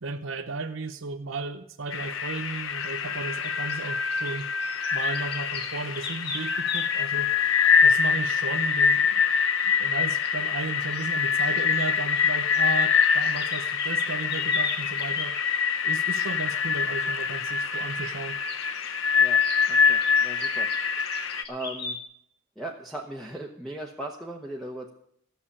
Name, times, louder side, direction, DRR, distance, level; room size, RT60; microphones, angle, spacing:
voice 1, 0.0-4.5 4.9-7.3 7.8-9.3 9.6-15.4 15.8-18.4, right 3 dB, 75° right, 7 dB, 0.8 m, -35 dB
sound 1, 1.9-21.4, left 6 dB, 75° left, 0.8 m, -25 dB
sound 2, 2.8-3.0 3.4-7.1 9.7-10.0 10.2-10.4 10.8-12.3 12.5-15.5 18.5-18.9 19.4-22.0, left 4 dB, 50° left, 1.9 m, -38 dB
voice 2, 19.7-20.7 21.0-21.1 21.5-22.0 22.6-24.9, right 1 dB, ahead, -1 dB, 1.1 m, -38 dB
14.5 x 6.9 x 8.6 m, 0.70 s
head